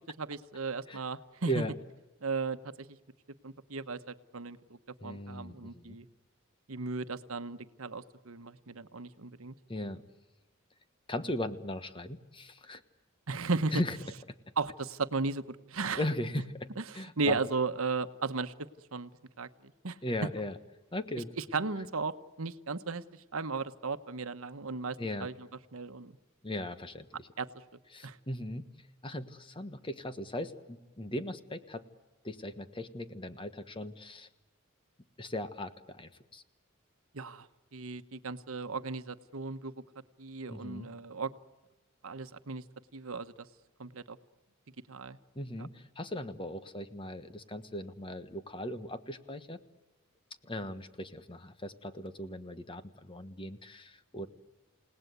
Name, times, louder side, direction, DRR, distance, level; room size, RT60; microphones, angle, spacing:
voice 1, 0.1-1.6 2.2-3.0 3.4-6.1 6.7-9.5 13.3-13.8 14.6-16.0 16.8-18.5 18.9-19.1 19.4-20.0 21.4-23.0 23.3-25.3 25.7-26.2 27.4-27.5 28.0-28.2 37.1-39.7 40.2-41.3 42.0-42.6 42.9-43.5 43.8-44.2 44.9-45.2, right 4 dB, 80° right, 10 dB, 1.1 m, -36 dB
voice 2, 5.0-6.0 9.7-10.0 11.1-12.8 13.7-14.0 16.0-17.4 20.0-20.6 20.9-21.3 25.0-25.3 26.4-27.3 27.9-28.7 29.0-31.8 32.2-34.3 35.2-36.4 40.5-40.9 45.3-49.6 50.4-54.3, left 1 dB, 25° left, 10 dB, 1.3 m, -38 dB
29.0 x 18.5 x 8.2 m, 1.1 s
head